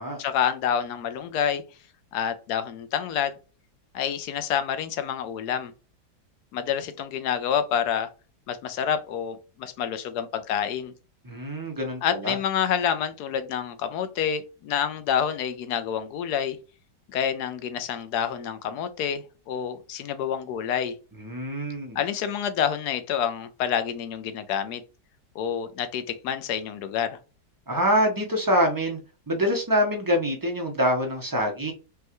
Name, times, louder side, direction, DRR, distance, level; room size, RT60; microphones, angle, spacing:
voice 1, 0.2-1.6 2.1-3.4 3.9-5.7 6.5-8.1 8.5-10.9 12.0-16.6 17.1-20.9 21.9-24.8 25.3-27.2, left 8 dB, 75° left, 1.2 m, -28 dB
voice 2, 11.2-12.4 21.2-22.0 27.7-29.0 29.3-31.7, equal, 30° right, 0.4 m, -25 dB
5.3 x 2.2 x 2.9 m
omnidirectional pair, 1.8 m